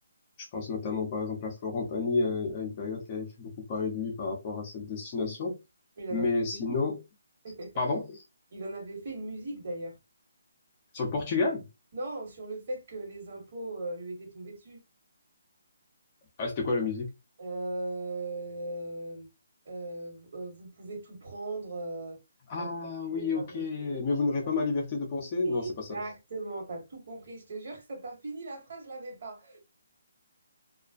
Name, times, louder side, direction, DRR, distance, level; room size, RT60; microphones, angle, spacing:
voice 1, 0.4-5.6 6.1-7.0 7.8-8.2 10.9-11.7 16.4-17.1 22.5-26.0, left 4 dB, 25° left, 0.6 m, -31 dB
voice 2, 6.0-6.3 6.5-6.8 7.4-7.7 8.5-10.0 11.9-14.8 17.4-19.3 19.6-22.2 22.5-22.7 23.1-24.0 25.4-29.6, right 2 dB, 50° right, 1.3 m, -38 dB
2.4 x 2.1 x 2.4 m
hypercardioid pair, 165°, 0 cm